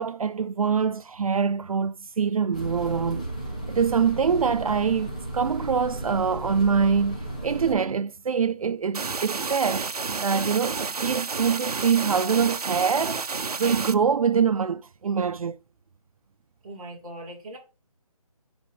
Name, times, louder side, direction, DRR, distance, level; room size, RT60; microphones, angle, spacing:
voice 1, 0.0-3.2 3.7-9.9 10.2-13.2 13.6-15.6, right 6 dB, 65° right, 0.4 m, -24 dB
sound 1, 2.5-7.7, right 1 dB, 10° left, 0.6 m, -34 dB
sound 2, 8.9-13.9, right 4 dB, 85° right, 0.8 m, -30 dB
voice 2, 16.6-17.6, right 1 dB, 10° right, 1.3 m, -40 dB
8.4 x 4.0 x 3.3 m
figure-of-eight pair, 175°, 19 cm